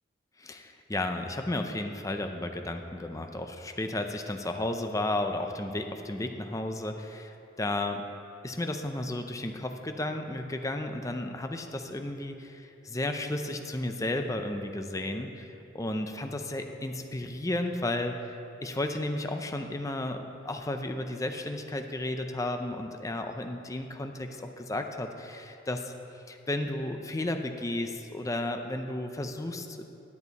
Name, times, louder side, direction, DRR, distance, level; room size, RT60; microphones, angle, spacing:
voice 1, 0.4-8.0 8.4-15.5 15.7-18.2 18.6-25.9 26.3-29.8, left 1 dB, 15° left, 5 dB, 0.5 m, -33 dB
10.5 x 9.0 x 4.1 m, 2.8 s
head